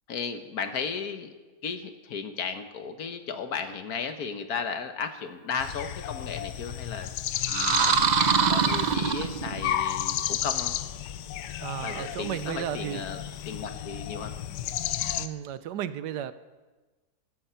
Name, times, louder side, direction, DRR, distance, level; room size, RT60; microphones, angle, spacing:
voice 1, 0.1-1.3 1.6-7.1 7.5-8.1 8.4-10.8 11.8-13.2 13.5-14.3, left 6 dB, 65° left, 8 dB, 1.6 m, -35 dB
sound 1, 5.6-15.3, left 11 dB, 85° left, 1.3 m, -33 dB
sound 2, 7.4-9.7, right 5 dB, 60° right, 0.4 m, -24 dB
voice 2, 11.6-13.2 15.2-16.3, right 10 dB, 85° right, 14 dB, 1.3 m, -34 dB
16.0 x 12.5 x 5.7 m, 1.3 s
omnidirectional pair, 1.8 m